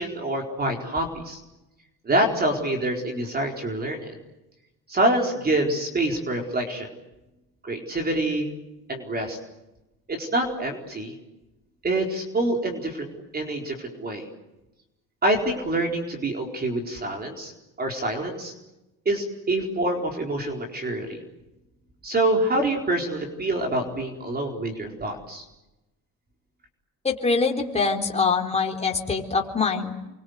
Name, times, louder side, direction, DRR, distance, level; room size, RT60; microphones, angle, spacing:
voice 1, 0.0-1.4 2.0-4.1 4.9-6.9 7.6-8.5 8.9-9.4 10.1-11.1 11.8-13.1 13.3-14.2 15.2-17.5 17.8-18.5 19.0-21.2 22.0-25.4, right 1 dB, 25° right, 2 dB, 4.3 m, -26 dB
voice 2, 27.0-30.1, left 4 dB, 15° left, 1 dB, 3.8 m, -24 dB
29.5 x 24.0 x 8.1 m, 0.99 s
cardioid pair, 145°, 37 cm